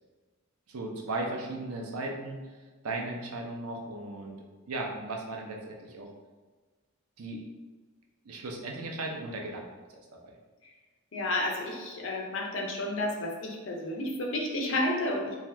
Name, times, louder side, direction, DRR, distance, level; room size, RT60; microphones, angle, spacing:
voice 1, 0.7-2.4 2.8-4.4 4.7-6.1 7.2-7.4 8.2-9.6 9.9-10.3, right 2 dB, 85° right, 0 dB, 0.5 m, -36 dB
voice 2, 11.1-15.4, left 1 dB, 60° left, 0 dB, 0.5 m, -31 dB
2.7 x 2.2 x 3.2 m, 1.3 s
head